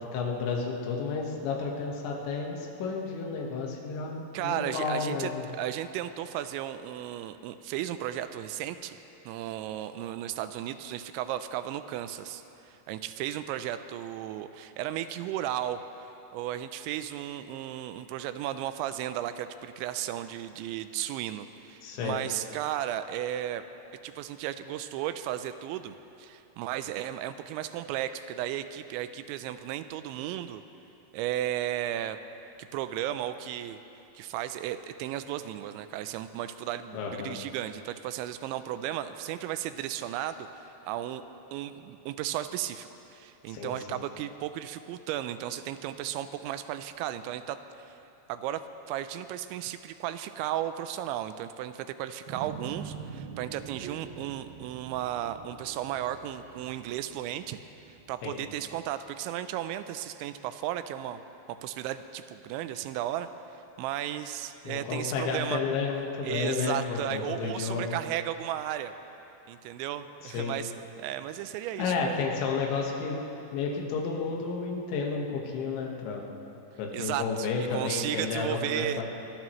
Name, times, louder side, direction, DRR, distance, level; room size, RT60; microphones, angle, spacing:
voice 1, 0.1-5.5 21.8-22.2 36.9-37.4 43.5-44.0 58.2-58.4 64.7-67.9 70.2-70.6 71.8-73.2 73.5-76.3 76.8-79.0, left 5 dB, 80° left, -1 dB, 3.8 m, -31 dB
voice 2, 4.3-9.0 9.3-15.8 16.3-23.6 24.0-30.6 31.1-32.2 32.7-33.8 34.2-40.5 40.8-41.2 41.5-48.0 48.3-57.6 58.1-61.2 61.5-63.3 63.8-65.6 66.2-68.9 69.5-72.3 76.9-79.0, right 12 dB, 85° right, 11 dB, 2.9 m, -34 dB
sound 1, 52.3-58.8, right 6 dB, 70° right, 2.3 m, -45 dB
23.5 x 20.0 x 3.1 m, 2.9 s
omnidirectional pair, 5.2 m